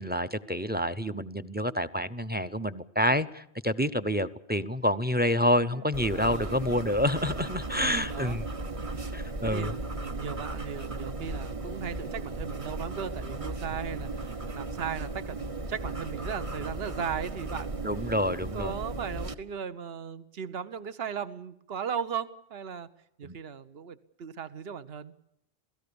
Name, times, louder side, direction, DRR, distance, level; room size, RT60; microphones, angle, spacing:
voice 1, 0.0-8.5 9.1-9.7 17.8-18.8 23.2-23.4, left 1 dB, 10° right, 15 dB, 0.7 m, -28 dB
voice 2, 5.6-6.6 7.7-8.4 9.4-17.9 18.5-22.9 23.2-25.1, right 7 dB, 65° right, 14 dB, 1.3 m, -37 dB
sound 1, 5.9-19.3, right 2 dB, 30° right, 1.1 m, -36 dB
27.5 x 17.0 x 7.0 m, 0.80 s
omnidirectional pair, 1.1 m